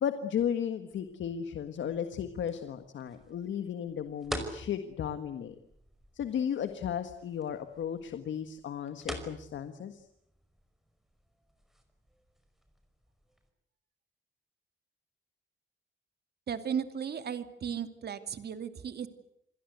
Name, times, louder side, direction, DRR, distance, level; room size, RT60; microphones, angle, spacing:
voice 1, 0.0-5.6 6.1-10.1, left 8 dB, 75° left, 9 dB, 1.7 m, -34 dB
sound 1, 0.9-13.5, equal, ahead, 5.3 m, -47 dB
voice 2, 16.5-19.1, right 7 dB, 55° right, 9 dB, 2.6 m, -35 dB
28.0 x 21.5 x 8.1 m, 0.74 s
cardioid pair, 115°, 20 cm